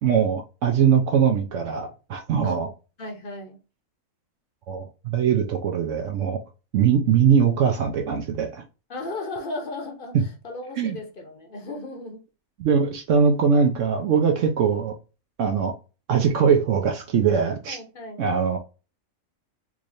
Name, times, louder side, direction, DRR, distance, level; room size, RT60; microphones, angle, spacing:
voice 1, 0.0-2.7 4.7-6.4 6.7-8.6 10.8-11.0 12.6-15.0 15.4-15.7 16.1-17.8 18.2-18.6, right 7 dB, 70° right, 0.9 m, -21 dB
voice 2, 3.0-3.6 8.9-12.2 17.7-18.3, left 2 dB, 45° left, 0.9 m, -35 dB
3.6 x 3.2 x 2.5 m
omnidirectional pair, 1.4 m